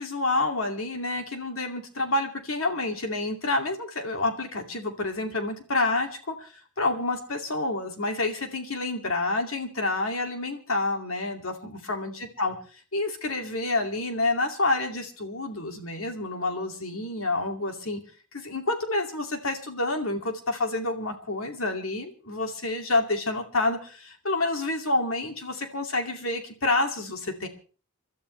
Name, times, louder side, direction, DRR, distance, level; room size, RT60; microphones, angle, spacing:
voice 1, 0.0-6.5 6.8-12.5 12.9-18.0 18.3-27.5, left 2 dB, 65° left, 4 dB, 2.5 m, -28 dB
29.0 x 12.5 x 3.3 m, 0.39 s
head